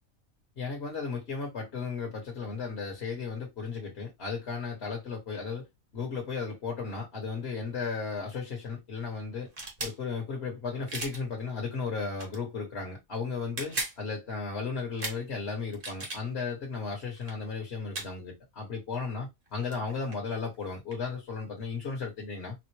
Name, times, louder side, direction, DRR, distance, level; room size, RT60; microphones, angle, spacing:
voice 1, 0.6-5.7 5.9-9.5 9.8-22.5, left 4 dB, 55° left, 1.4 m, -35 dB
sound 1, 9.4-10.0 10.9-11.2 12.1-12.4 13.4-14.0 15.0-15.2 15.7-16.2 17.2-17.3 17.9-18.1 19.5-19.6 19.7-21.0, right 2 dB, 45° right, 1.3 m, -36 dB
4.3 x 2.1 x 3.1 m
omnidirectional pair, 1.4 m